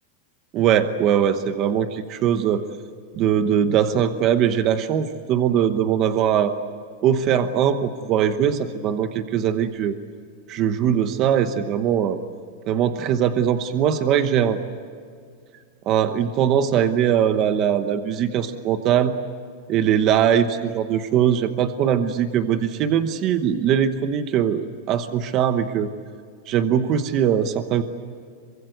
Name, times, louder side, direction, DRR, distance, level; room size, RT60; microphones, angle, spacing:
voice 1, 0.5-2.6 3.1-6.5 7.0-9.9 10.5-12.2 12.7-14.6 15.9-19.1 19.7-20.5 20.7-25.9 26.5-27.8, right 9 dB, 30° right, 10 dB, 1.0 m, -21 dB
27.0 x 23.5 x 8.0 m, 2.2 s
supercardioid pair, 175°, 0 cm